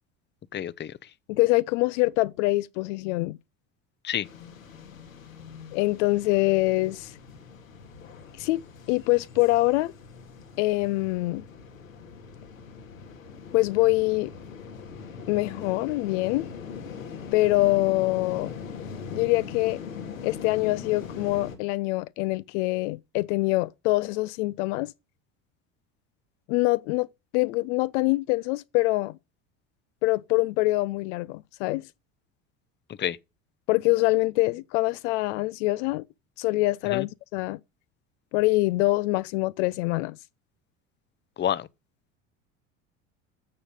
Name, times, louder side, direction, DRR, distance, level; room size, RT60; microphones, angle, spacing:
voice 1, 0.5-0.9 4.0-4.3 33.0-33.2 36.9-37.0 41.4-41.7, left 10 dB, 30° left, 0.7 m, -28 dB
voice 2, 1.3-3.4 5.7-7.2 8.4-8.6 8.9-9.9 10.6-11.4 13.5-14.3 15.3-16.5 17.3-18.5 19.1-19.8 20.2-24.9 26.5-27.1 27.3-29.2 30.0-31.9 33.7-36.0 36.4-37.6 38.3-40.2, left 21 dB, 65° left, 0.6 m, -24 dB
sound 1, 4.2-21.6, left 6 dB, 85° left, 2.3 m, -41 dB
13.5 x 7.2 x 5.2 m
hypercardioid pair, 70°, 39 cm